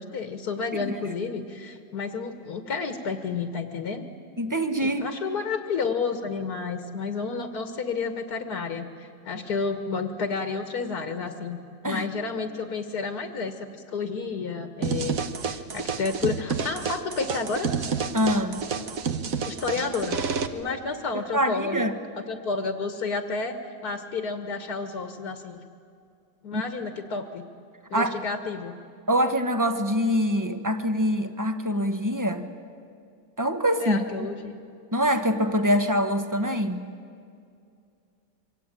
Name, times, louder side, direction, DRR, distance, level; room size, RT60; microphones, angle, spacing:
voice 1, 0.0-4.1 4.8-17.7 19.5-20.2 20.5-21.8 22.3-25.6 26.4-27.4 27.9-28.7 33.8-34.6, left 4 dB, 60° left, 7 dB, 1.9 m, -31 dB
voice 2, 4.4-5.0 11.8-12.1 18.1-18.6 21.3-21.9 26.5-26.6 27.9-28.1 29.1-32.5 33.4-34.0 34.9-36.9, equal, 10° right, 7 dB, 1.2 m, -24 dB
sound 1, 14.8-20.5, right 6 dB, 55° right, 1.5 m, -29 dB
26.5 x 24.5 x 9.0 m, 2.4 s
omnidirectional pair, 2.0 m